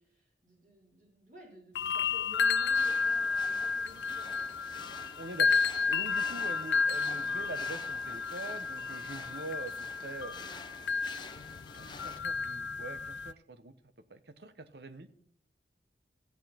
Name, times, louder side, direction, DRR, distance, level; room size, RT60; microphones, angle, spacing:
voice 1, 0.0-4.5 15.1-15.2, left 1 dB, 45° right, -2 dB, 3.9 m, -53 dB
sound 1, 1.7-13.3, left 5 dB, 80° left, 0.5 m, -32 dB
sound 2, 2.7-12.2, left 4 dB, 25° left, 0.7 m, -49 dB
voice 2, 5.2-5.6 5.9-10.3 11.7-13.7 14.1-15.2, right 2 dB, 65° right, 12 dB, 0.9 m, -44 dB
14.0 x 8.1 x 4.3 m, 0.62 s
head